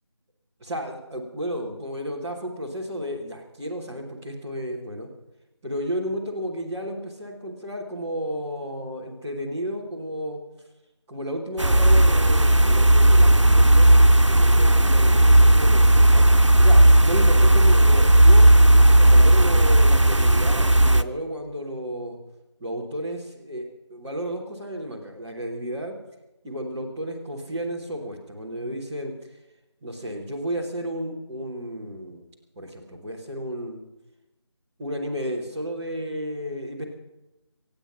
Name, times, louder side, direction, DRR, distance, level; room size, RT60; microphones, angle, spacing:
voice 1, 0.6-5.1 5.6-10.4 11.1-14.0 14.4-22.2 22.6-25.9 26.4-29.1 29.8-32.3 32.6-33.8 34.8-36.8, equal, 5° right, -6 dB, 0.9 m, -32 dB
sound 1, 11.6-21.0, right 1 dB, 85° right, 0.9 m, -15 dB
24.5 x 9.0 x 5.8 m, 0.97 s
figure-of-eight pair, 165°, 15 cm